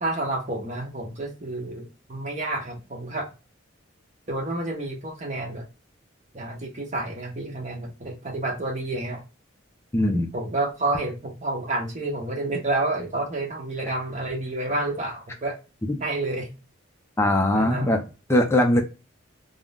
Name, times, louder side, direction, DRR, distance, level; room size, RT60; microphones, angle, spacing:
voice 1, 0.0-3.3 4.3-5.7 6.3-9.2 10.3-15.6 16.0-16.5 17.5-18.0, right 2 dB, 35° right, 0 dB, 0.8 m, -29 dB
voice 2, 9.9-10.3 15.9-16.0 17.2-18.0 18.3-18.8, left 1 dB, 10° left, 3 dB, 0.4 m, -20 dB
3.6 x 2.0 x 2.2 m, 0.30 s
head